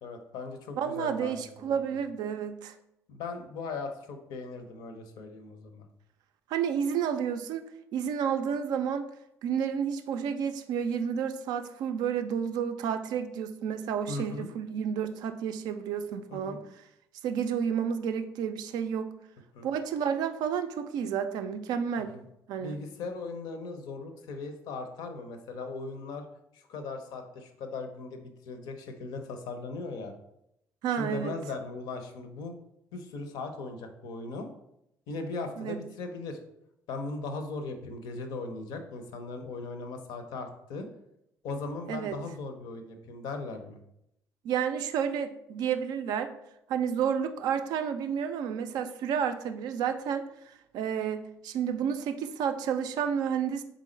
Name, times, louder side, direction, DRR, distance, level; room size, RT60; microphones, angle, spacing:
voice 1, 0.0-1.8 3.1-5.9 14.1-14.5 16.3-16.6 19.5-19.7 22.0-22.2 22.6-26.2 26.5-30.1 30.9-32.5 32.9-34.5 35.1-36.4 36.9-40.9 41.4-43.8, left 3 dB, 60° left, 7 dB, 0.6 m, -38 dB
voice 2, 0.8-2.7 6.5-7.7 7.9-9.1 9.4-16.6 17.2-19.1 19.6-22.1 22.5-22.8 30.8-31.3 35.6-35.8 41.9-42.2 44.4-46.3 46.7-50.3 50.7-53.6, right 7 dB, 55° right, 8 dB, 0.4 m, -30 dB
4.0 x 3.6 x 3.1 m, 0.80 s
figure-of-eight pair, 50°, 8 cm